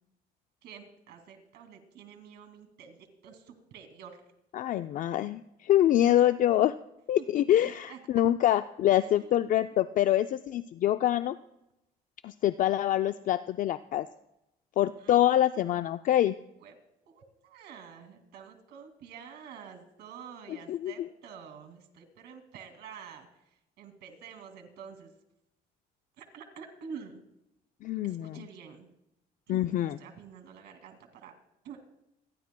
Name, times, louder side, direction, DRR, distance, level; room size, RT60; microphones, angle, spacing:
voice 1, 0.6-4.2 7.2-8.0 9.0-9.5 15.0-15.2 16.6-16.7 17.1-23.3 23.8-25.1 26.2-27.1 28.0-28.9 29.5-29.7 30.0-31.3 31.6-31.9, right 7 dB, 80° right, 6 dB, 2.3 m, -48 dB
voice 2, 4.5-6.7 7.1-11.3 12.2-14.1 14.8-16.3 20.5-21.1 27.8-28.4 29.5-30.0, left 12 dB, 50° left, 11 dB, 0.4 m, -25 dB
28.0 x 10.5 x 2.2 m, 0.86 s
cardioid pair, 110°, 17 cm